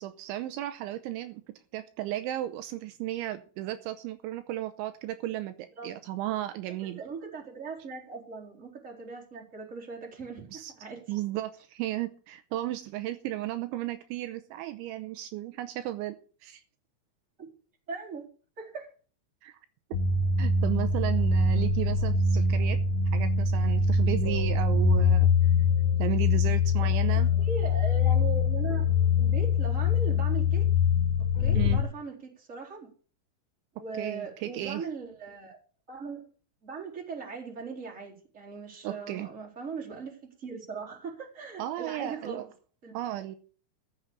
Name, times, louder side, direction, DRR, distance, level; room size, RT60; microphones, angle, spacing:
voice 1, 0.0-1.4 1.7-7.0 10.5-10.7 11.1-16.2 16.4-16.6 19.4-19.5 20.4-22.8 23.1-25.3 26.0-27.3 31.5-31.8 33.9-34.9 38.8-39.3 41.6-42.5 42.9-43.4, right 14 dB, 80° right, 9 dB, 3.1 m, -34 dB
voice 2, 7.0-10.4 10.8-11.0 17.4-17.5 17.9-18.2 18.6-18.9 27.4-28.9 29.2-30.7 31.4-32.9 33.7-35.6 35.9-36.3 36.6-42.4 42.8-42.9, right 4 dB, 15° right, -2 dB, 3.7 m, -39 dB
sound 1, 19.9-31.8, left 4 dB, 65° left, 4.2 m, -24 dB
14.0 x 7.3 x 6.9 m, 0.40 s
omnidirectional pair, 5.5 m